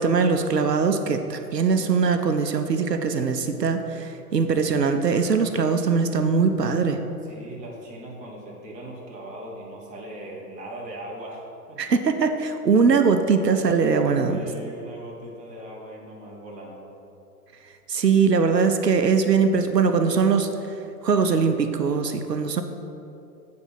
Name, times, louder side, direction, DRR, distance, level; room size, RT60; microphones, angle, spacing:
voice 1, 0.0-7.0 11.8-14.4 17.9-20.5 21.0-22.6, right 5 dB, 85° right, 7 dB, 0.6 m, -21 dB
voice 2, 7.2-12.0 14.0-16.9, right 1 dB, 15° right, -3 dB, 1.0 m, -39 dB
7.8 x 4.2 x 5.7 m, 2.8 s
figure-of-eight pair, 110°, 47 cm